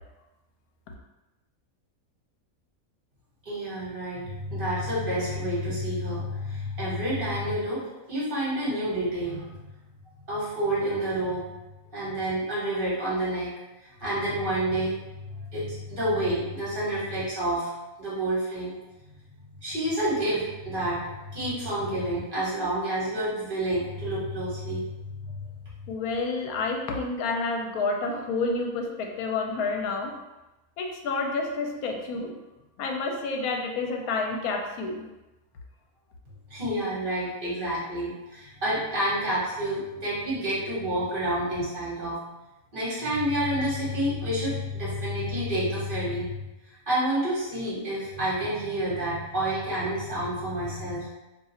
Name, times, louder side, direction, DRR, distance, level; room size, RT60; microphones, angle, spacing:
voice 1, 3.4-9.5 10.3-11.4 11.9-13.5 14.0-17.7 18.0-18.7 19.6-25.5 36.5-42.2 42.7-46.4 46.9-51.1, right 1 dB, 35° right, -8 dB, 1.4 m, -29 dB
voice 2, 25.9-30.1 30.8-32.3 32.8-35.0, left 3 dB, 75° left, 2 dB, 1.0 m, -29 dB
2.7 x 2.4 x 4.1 m, 1.0 s
omnidirectional pair, 1.6 m